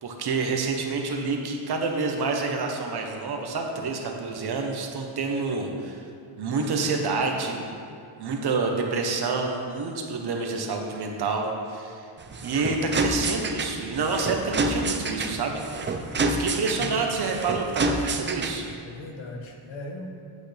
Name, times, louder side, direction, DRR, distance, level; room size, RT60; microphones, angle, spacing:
voice 1, 0.0-6.0 6.4-7.6 8.2-12.1 12.4-15.9 16.2-18.6, right 4 dB, 50° right, 2 dB, 1.0 m, -28 dB
sound 1, 12.2-18.8, right 2 dB, 25° right, 0.3 m, -28 dB
voice 2, 16.1-16.4 16.8-17.0 18.8-20.2, left 1 dB, 65° left, 2 dB, 1.2 m, -38 dB
8.6 x 8.4 x 3.4 m, 2.4 s
wide cardioid pair, 175°, 50 cm